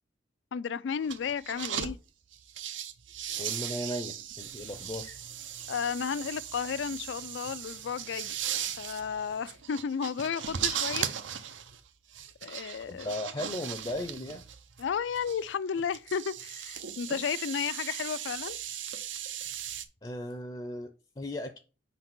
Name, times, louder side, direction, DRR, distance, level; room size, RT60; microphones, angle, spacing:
voice 1, 0.5-2.0 5.7-8.4 8.8-11.1 12.4-13.1 14.8-18.6, left 7 dB, 80° left, 0.4 m, -33 dB
sound 1, 1.0-1.9 2.3-19.9, right 9 dB, 90° right, 0.7 m, -38 dB
voice 2, 3.4-5.2 12.9-14.4 19.4-19.5 20.0-21.6, left 1 dB, 25° left, 0.5 m, -37 dB
5.1 x 4.0 x 5.9 m
head